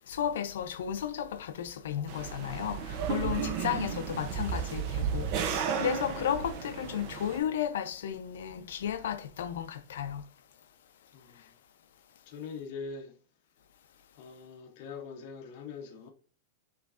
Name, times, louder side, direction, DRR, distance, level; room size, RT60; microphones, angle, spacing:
voice 1, 0.1-10.2, left 9 dB, 70° left, 0.6 m, -34 dB
sound 1, 2.1-7.4, right 7 dB, 35° right, 0.6 m, -33 dB
voice 2, 12.3-13.2 14.2-16.1, left 5 dB, 35° left, 0.8 m, -43 dB
5.7 x 3.2 x 2.5 m
supercardioid pair, 180°, 0 cm